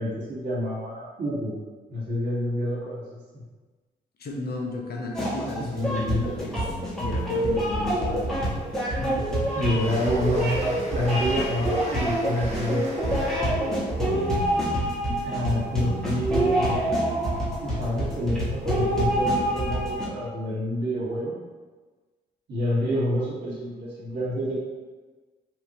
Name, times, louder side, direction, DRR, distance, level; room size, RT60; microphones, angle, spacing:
voice 1, 0.0-1.5 1.9-3.0 3.3-3.4 5.6-6.3 9.5-13.5 15.2-17.0 17.6-21.3 22.5-24.6, equal, 55° right, -8 dB, 1.2 m, -28 dB
voice 2, 4.2-6.7 7.0-8.5 9.0-9.3, left 2 dB, 50° left, 0 dB, 0.7 m, -34 dB
sound 1, 5.1-20.1, right 1 dB, ahead, 1.2 m, -26 dB
Train, 8.2-15.9, right 1 dB, 30° right, 1.3 m, -42 dB
2.9 x 2.5 x 2.8 m, 1.3 s
hypercardioid pair, 45°, 21 cm